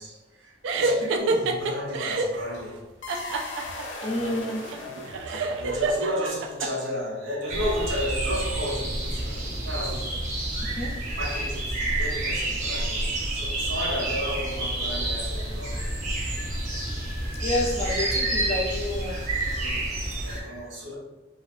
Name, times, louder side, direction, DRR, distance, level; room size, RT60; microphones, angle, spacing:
voice 1, 0.0-2.8 3.1-3.3 4.8-9.4 9.6-10.1 11.0-13.0 13.3-15.9 19.3-21.0, equal, 90° right, -3 dB, 0.9 m, -33 dB
sound 1, 0.6-2.4 3.1-6.7, right 2 dB, 70° right, 0.3 m, -27 dB
sound 2, 3.0-6.2, left 2 dB, 85° left, 0.6 m, -38 dB
voice 2, 4.0-4.6 10.8-10.9 17.4-19.2, left 1 dB, 35° left, 0 dB, 0.4 m, -28 dB
sound 3, 7.5-20.4, right 1 dB, 40° right, 0.6 m, -29 dB
2.4 x 2.3 x 3.3 m, 1.1 s
head